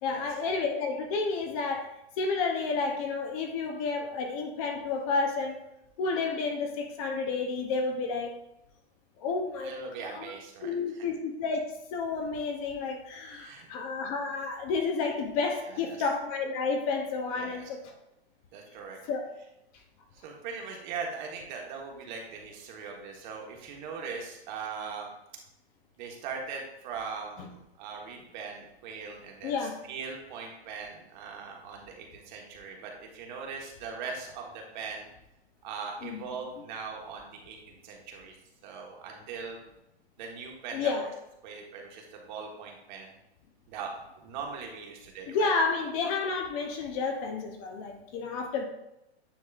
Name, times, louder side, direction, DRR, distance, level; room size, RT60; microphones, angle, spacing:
voice 1, 0.0-5.6 6.0-8.3 9.2-10.3 10.6-17.9 19.0-19.3 27.4-27.5 29.4-29.8 36.0-36.2 40.7-41.1 45.3-48.7, left 4 dB, 35° left, 4 dB, 0.7 m, -31 dB
voice 2, 9.6-10.7 13.2-13.7 17.4-17.7 18.5-19.0 20.2-25.1 26.0-29.5 29.9-35.1 35.6-38.3 38.6-39.7 40.2-41.1 41.4-43.1 43.7-43.9 44.2-45.5, right 5 dB, 45° right, 1 dB, 1.4 m, -40 dB
9.3 x 4.1 x 2.5 m, 0.86 s
hypercardioid pair, 155°, 33 cm